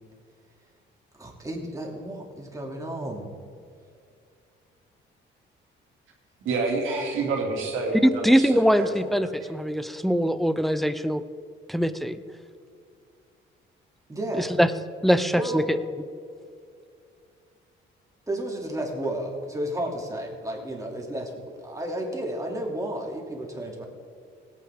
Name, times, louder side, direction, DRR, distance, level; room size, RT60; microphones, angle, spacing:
voice 1, 1.1-3.3 14.1-14.5 15.3-15.7 18.3-23.8, right 1 dB, 15° right, 0 dB, 2.7 m, -32 dB
voice 2, 6.4-8.9 9.2-9.3, right 3 dB, 90° right, 0 dB, 2.5 m, -28 dB
voice 3, 8.0-11.2 11.7-12.2 14.4-14.7 15.0-15.8, equal, ahead, 11 dB, 0.6 m, -22 dB
17.5 x 9.1 x 3.6 m, 2.3 s
cardioid pair, 90°, 20 cm